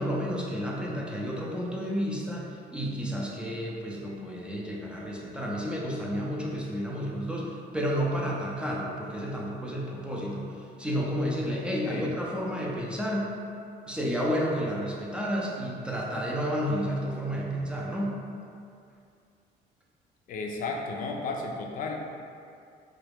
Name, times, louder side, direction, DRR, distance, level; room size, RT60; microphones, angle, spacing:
voice 1, 0.0-13.3 13.9-18.2, equal, 5° right, -4 dB, 0.5 m, -31 dB
voice 2, 20.3-22.0, left 3 dB, 55° left, 1 dB, 0.4 m, -33 dB
2.9 x 2.3 x 3.4 m, 2.4 s
cardioid pair, 110°, 17 cm